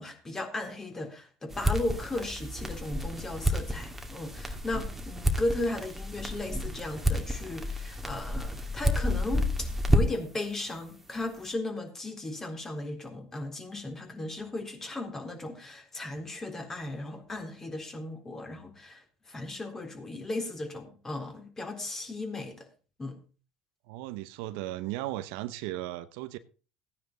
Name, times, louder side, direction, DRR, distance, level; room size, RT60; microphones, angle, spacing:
voice 1, 0.0-22.7 23.0-23.2, left 2 dB, 20° left, 3.8 m, -36 dB
sound 1, 1.5-10.3, equal, 10° right, 2.2 m, -30 dB
voice 2, 23.9-26.4, right 15 dB, 75° right, 0.9 m, -36 dB
15.0 x 9.6 x 4.0 m
supercardioid pair, 85°, 2 cm